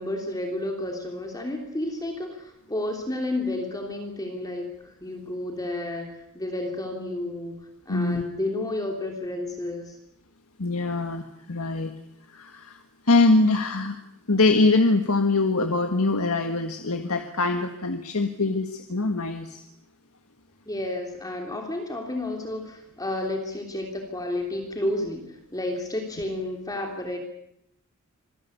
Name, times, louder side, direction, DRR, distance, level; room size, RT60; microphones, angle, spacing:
voice 1, 0.0-7.6 7.9-10.0 20.7-27.2, left 1 dB, 15° left, 2 dB, 3.1 m, -31 dB
voice 2, 7.9-8.2 10.6-11.9 12.3-12.8 13.1-14.0 14.3-19.6, left 3 dB, 75° left, 6 dB, 1.7 m, -23 dB
26.0 x 19.0 x 8.4 m, 0.77 s
head